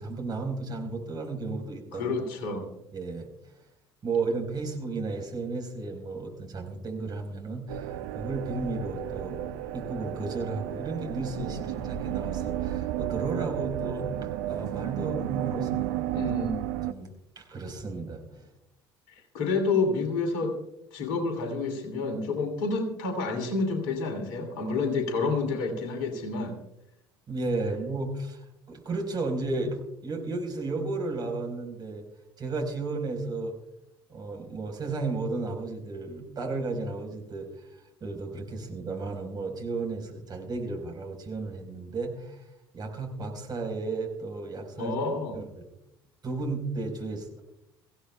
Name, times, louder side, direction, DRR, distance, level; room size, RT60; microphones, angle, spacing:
voice 1, 0.0-2.1 2.4-2.6 2.9-3.3 4.0-9.4 9.7-16.3 16.8-17.1 17.4-18.5 27.3-28.4 28.7-32.0 32.4-33.5 34.1-37.5 38.0-42.4 42.7-44.9 45.3-45.7 46.2-47.4, right 3 dB, 35° right, 2 dB, 4.4 m, -33 dB
voice 2, 1.9-2.6 16.1-16.6 19.1-20.6 20.9-26.6 44.8-45.4, left 3 dB, 60° left, 6 dB, 2.7 m, -29 dB
sound 1, 7.7-16.9, right 13 dB, 60° right, 0.7 m, -33 dB
24.0 x 15.5 x 2.3 m, 0.84 s
figure-of-eight pair, 60°, 13 cm